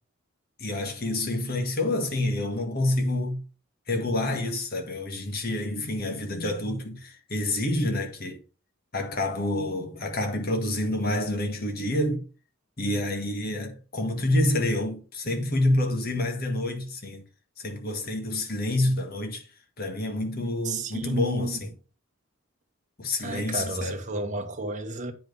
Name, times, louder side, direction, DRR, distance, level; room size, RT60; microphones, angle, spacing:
voice 1, 0.6-3.4 3.9-8.4 8.9-12.2 12.8-17.2 17.6-19.5 19.8-21.7 23.0-24.0, left 1 dB, 50° left, 1.6 m, -28 dB
voice 2, 20.6-21.6 23.2-25.1, right 2 dB, 40° right, 1.3 m, -32 dB
8.9 x 5.2 x 3.9 m
head